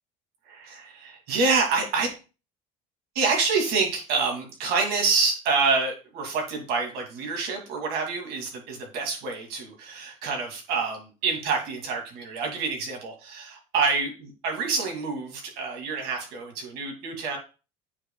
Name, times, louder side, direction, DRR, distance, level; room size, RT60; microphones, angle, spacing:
voice 1, 0.5-2.1 3.1-17.4, right 4 dB, 65° right, 2 dB, 2.5 m, -27 dB
8.7 x 5.1 x 2.3 m, 0.33 s
cardioid pair, 140°, 17 cm